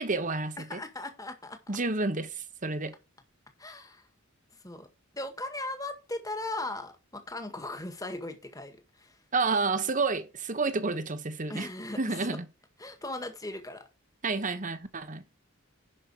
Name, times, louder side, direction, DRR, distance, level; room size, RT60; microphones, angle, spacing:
voice 1, 0.0-0.8 1.7-3.0 9.3-11.7 12.0-12.5 14.2-15.2, right 3 dB, 35° right, 1.1 m, -30 dB
voice 2, 0.7-1.8 3.6-4.1 4.5-4.9 5.1-9.2 11.5-12.3 12.8-13.9, left 2 dB, 15° left, 1.8 m, -38 dB
11.0 x 5.4 x 4.6 m
head